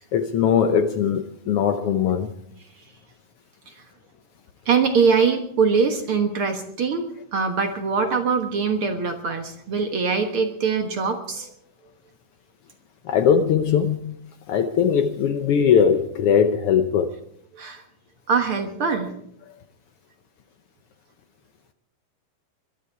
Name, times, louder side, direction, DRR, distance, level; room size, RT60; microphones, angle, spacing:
voice 1, 0.0-2.3 13.0-14.1 14.5-17.1, left 7 dB, 85° left, 1.2 m, -20 dB
voice 2, 4.7-7.0 7.3-11.5 17.6-17.8 18.3-19.1, right 5 dB, 55° right, 1.8 m, -22 dB
22.0 x 12.5 x 4.8 m
omnidirectional pair, 3.7 m